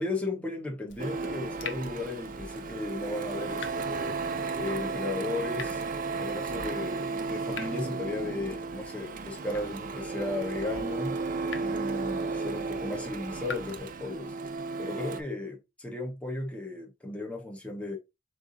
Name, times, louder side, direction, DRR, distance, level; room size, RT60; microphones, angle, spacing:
voice 1, 0.0-4.1 4.5-5.8 6.2-11.2 11.5-14.3 14.8-18.0, left 2 dB, 5° left, 1.1 m, -35 dB
Water tap faucet / Drip, 0.9-13.8, left 4 dB, 75° left, 0.8 m, -46 dB
Printer, 1.0-15.2, right 4 dB, 45° right, 0.5 m, -34 dB
4.0 x 3.5 x 3.8 m
head